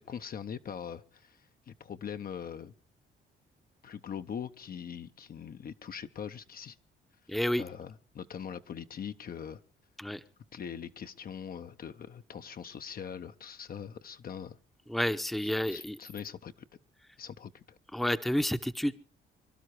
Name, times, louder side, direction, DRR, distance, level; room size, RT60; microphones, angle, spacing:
voice 1, 0.0-2.7 3.8-6.8 7.6-9.6 10.5-14.6 15.7-16.5 17.2-17.8, left 8 dB, 50° left, 0.8 m, -42 dB
voice 2, 7.3-7.6 10.0-10.2 14.9-16.0 17.9-18.9, equal, ahead, 0.8 m, -30 dB
23.5 x 12.0 x 4.8 m
cardioid pair, 90°, 20 cm